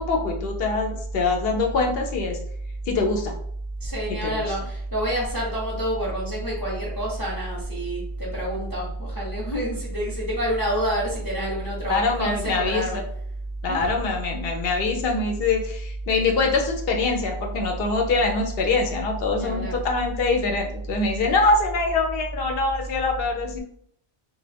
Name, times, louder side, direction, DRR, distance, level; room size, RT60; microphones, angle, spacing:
voice 1, 0.0-2.4 2.9-3.3 4.1-4.4 11.9-13.0 13.6-23.6, left 3 dB, 70° left, 2 dB, 0.8 m, -24 dB
voice 2, 3.8-13.0 13.7-13.9 19.3-19.8, right 1 dB, 25° left, -5 dB, 0.7 m, -28 dB
2.3 x 2.1 x 3.3 m, 0.67 s
omnidirectional pair, 1.1 m